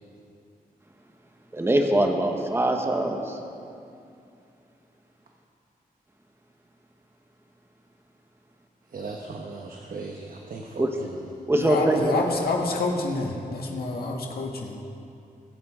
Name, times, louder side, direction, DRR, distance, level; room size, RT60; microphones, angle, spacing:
voice 1, 1.5-3.4 10.8-10.9 11.5-12.3, right 1 dB, 15° right, 3 dB, 1.1 m, -23 dB
voice 2, 8.9-11.3, right 3 dB, 65° right, 1 dB, 1.1 m, -38 dB
voice 3, 11.6-14.8, left 3 dB, 90° left, 0 dB, 1.6 m, -27 dB
21.5 x 8.6 x 5.0 m, 2.5 s
wide cardioid pair, 140°, 15 cm